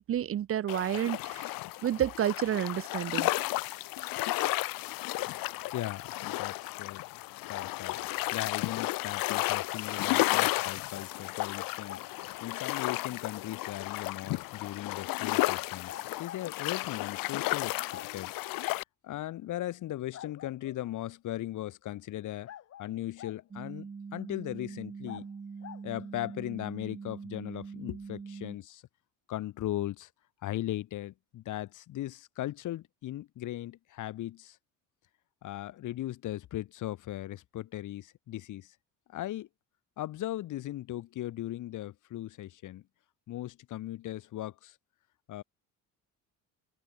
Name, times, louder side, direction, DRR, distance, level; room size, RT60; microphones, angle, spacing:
voice 1, 0.0-1.5 1.8-3.3, right 10 dB, 40° right, 1.0 m, -30 dB
sound 1, 0.7-18.8, left 20 dB, 85° left, 0.7 m, -33 dB
voice 2, 5.7-7.0 7.5-12.1 12.4-17.8 18.1-18.3 19.0-22.5 22.8-25.3 25.8-28.8 29.3-30.1 30.4-34.6 35.4-38.7 39.1-39.5 40.0-42.8 43.3-44.8 45.3-45.4, left 14 dB, 60° left, 2.1 m, -38 dB
sound 2, 7.5-8.1 9.3-9.9 10.6-11.1 11.8-12.1 13.8-13.9 15.9-16.4 17.9-18.1 20.1-20.8 22.4-23.4 25.0-25.2 25.6-25.9, left 10 dB, 45° left, 2.6 m, -46 dB
sound 3, 23.5-28.6, right 5 dB, 20° right, 1.7 m, -43 dB
cardioid pair, 170°, 34 cm